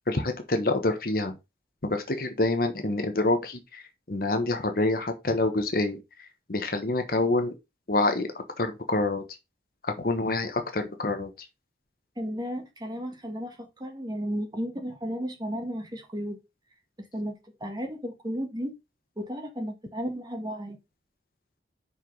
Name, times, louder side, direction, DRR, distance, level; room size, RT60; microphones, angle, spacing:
voice 1, 0.1-1.3 1.8-6.0 6.5-7.5 7.9-8.3 8.6-9.2 9.8-11.3, left 2 dB, 50° left, 1.2 m, -26 dB
voice 2, 12.2-16.4 17.0-18.7 19.2-20.8, equal, 20° right, 1.7 m, -34 dB
5.6 x 4.9 x 5.4 m
head